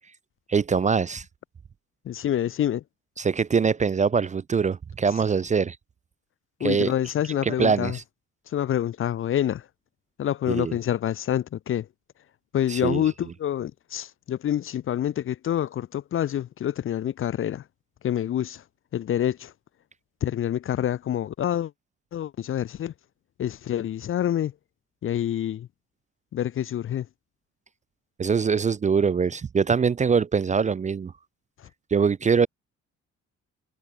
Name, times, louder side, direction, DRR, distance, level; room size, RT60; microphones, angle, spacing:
voice 1, 0.5-1.2 3.2-5.8 6.6-6.9 7.3-8.0 10.5-10.8 12.7-13.0 28.2-31.1 31.9-32.5, right 5 dB, 25° right, 0.4 m, -23 dB
voice 2, 2.1-2.8 6.6-8.0 8.5-9.7 10.2-11.9 12.5-17.6 18.0-18.6 18.9-19.5 20.2-21.7 22.1-22.9 23.4-24.5 25.0-25.7 26.3-27.1 31.6-31.7, left 11 dB, 45° left, 0.5 m, -27 dB
cardioid pair, 90°, 30 cm